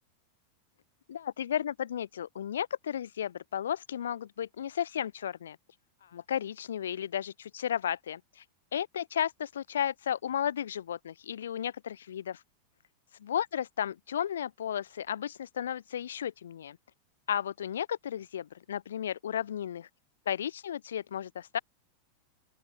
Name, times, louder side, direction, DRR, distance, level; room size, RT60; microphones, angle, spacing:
voice 1, 1.1-5.6 6.0-8.4 8.7-12.4 13.3-16.8 17.3-19.9 20.3-21.6, left 9 dB, 65° left, 0.4 m, -34 dB
open air
figure-of-eight pair, 90°, 0 cm